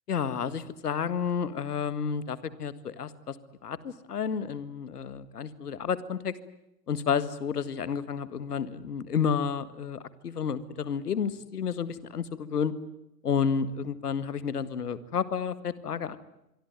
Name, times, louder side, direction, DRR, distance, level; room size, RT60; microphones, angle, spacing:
voice 1, 0.1-3.4 3.6-6.3 6.9-12.7 13.2-16.2, left 7 dB, 70° left, 15 dB, 2.0 m, -31 dB
26.5 x 23.0 x 9.3 m, 0.86 s
figure-of-eight pair, 95°, 48 cm